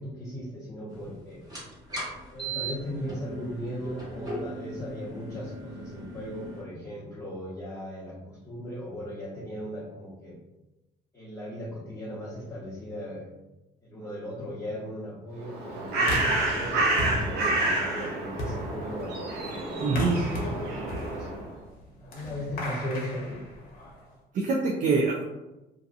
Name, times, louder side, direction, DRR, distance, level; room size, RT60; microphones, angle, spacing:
voice 1, 0.0-1.4 2.3-10.4 11.1-13.3 13.8-20.4 20.6-21.3 22.0-23.4, equal, 15° left, -10 dB, 0.9 m, -38 dB
sound 1, 1.4-6.6, right 2 dB, 25° right, 1.3 m, -38 dB
Bird, 15.4-21.5, right 2 dB, 90° right, 0.7 m, -29 dB
sound 2, 16.1-24.1, left 1 dB, 60° left, 0.8 m, -36 dB
voice 2, 19.8-20.2 24.3-25.2, right 3 dB, 50° right, -1 dB, 0.4 m, -24 dB
2.6 x 2.5 x 2.4 m, 1.0 s
cardioid pair, 110°, 17 cm